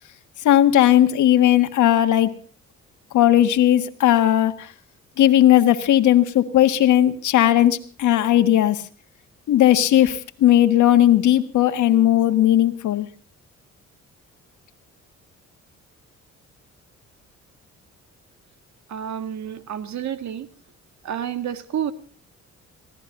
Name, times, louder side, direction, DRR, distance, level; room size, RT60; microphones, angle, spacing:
voice 1, 0.4-2.3 3.1-4.7 5.2-8.8 9.5-13.1, left 12 dB, 75° left, 9 dB, 1.7 m, -17 dB
voice 2, 18.9-20.5 21.0-21.9, right 9 dB, 65° right, 10 dB, 1.9 m, -29 dB
26.5 x 17.0 x 2.7 m, 0.42 s
cardioid pair, 90°, 30 cm